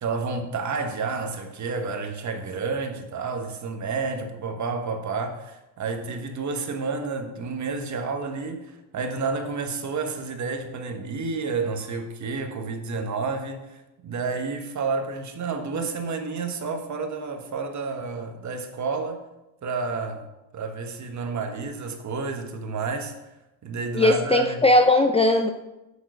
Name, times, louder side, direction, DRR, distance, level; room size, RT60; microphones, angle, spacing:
voice 1, 0.0-19.3 19.6-20.3 20.5-23.1 23.6-24.6, right 4 dB, 40° right, 1.4 m, -30 dB
voice 2, 23.9-25.5, left 2 dB, 15° left, 0.5 m, -18 dB
7.7 x 6.4 x 6.2 m
supercardioid pair, 95°, 45 cm